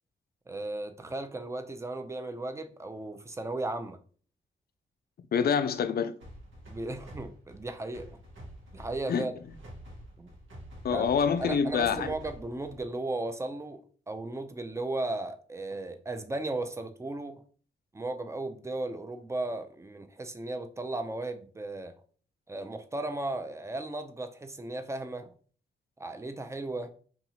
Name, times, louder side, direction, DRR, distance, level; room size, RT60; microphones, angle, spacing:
voice 1, 0.5-4.0 6.7-8.1 8.7-9.3 10.2-10.3 10.9-11.1 11.4-13.8 14.1-17.4 17.9-21.9 22.5-25.3 26.0-26.9, right 2 dB, 15° right, 0.4 m, -35 dB
voice 2, 5.3-6.1 9.1-9.3 10.8-12.1, left 7 dB, 50° left, 0.4 m, -26 dB
sound 1, 6.2-13.0, equal, 75° right, 1.0 m, -48 dB
2.6 x 2.4 x 2.8 m
supercardioid pair, 45°, 20 cm